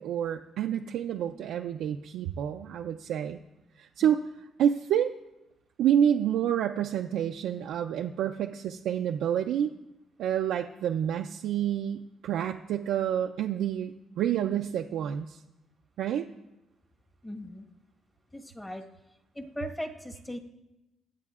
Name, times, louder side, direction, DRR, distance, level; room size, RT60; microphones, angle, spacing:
voice 1, 0.0-3.4 3.8-4.2 4.6-5.1 5.8-9.7 10.2-15.4 16.0-16.3, right 9 dB, 80° right, 3 dB, 0.4 m, -28 dB
voice 2, 17.2-17.7 18.3-18.8 19.3-20.4, equal, 15° left, 2 dB, 1.3 m, -38 dB
21.0 x 8.4 x 2.4 m, 0.97 s
cardioid pair, 90°, 0 cm